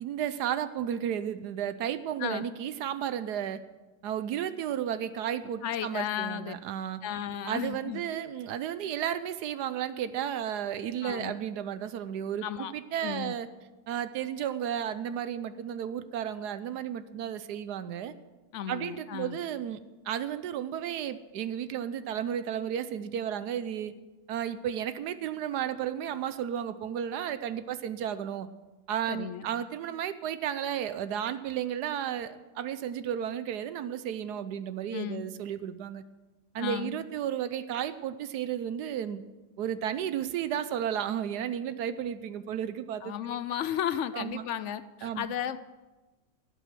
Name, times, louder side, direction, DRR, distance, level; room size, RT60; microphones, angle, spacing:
voice 1, 0.0-3.6 4.0-7.0 7.4-13.5 13.9-18.1 18.7-19.8 20.0-23.9 24.3-28.5 28.9-36.0 36.5-39.2 39.6-43.4 44.1-44.4 45.0-45.3, right 9 dB, 80° right, 13 dB, 1.2 m, -33 dB
voice 2, 5.6-6.5 7.0-8.0 11.0-11.3 12.4-12.7 13.0-13.4 18.5-19.4 29.1-29.4 34.9-35.2 36.6-37.0 43.0-45.6, left 10 dB, 70° left, 14 dB, 0.7 m, -34 dB
17.0 x 8.1 x 6.2 m, 1.2 s
omnidirectional pair, 1.8 m